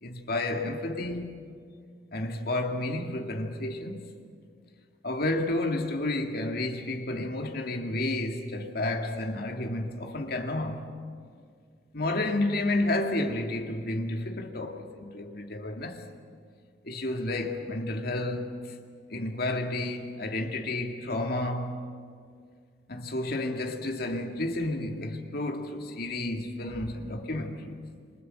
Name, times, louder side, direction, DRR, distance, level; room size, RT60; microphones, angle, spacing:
voice 1, 0.0-1.5 2.1-4.1 5.0-11.0 11.9-16.1 16.8-18.6 19.1-21.8 22.9-27.8, left 2 dB, 55° left, 2.5 m, -31 dB
27.5 x 26.5 x 7.9 m
head